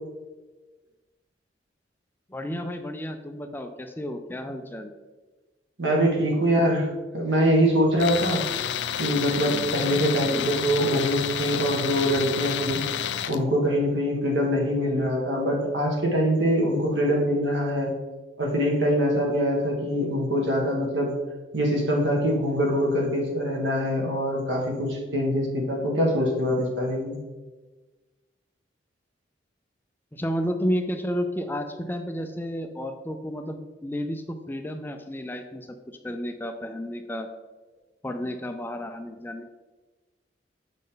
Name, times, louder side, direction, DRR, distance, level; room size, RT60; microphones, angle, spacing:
voice 1, 2.3-4.9 10.2-10.5 14.8-15.0 30.1-37.3 38.0-39.5, equal, 10° left, 6 dB, 0.4 m, -32 dB
voice 2, 5.8-6.9 7.1-8.4 9.0-12.8 13.3-17.9 18.4-21.1 21.5-27.2, equal, 85° right, -1 dB, 1.8 m, -24 dB
Tools, 8.0-13.4, left 9 dB, 75° left, 0.4 m, -30 dB
7.4 x 5.2 x 3.9 m, 1.2 s
head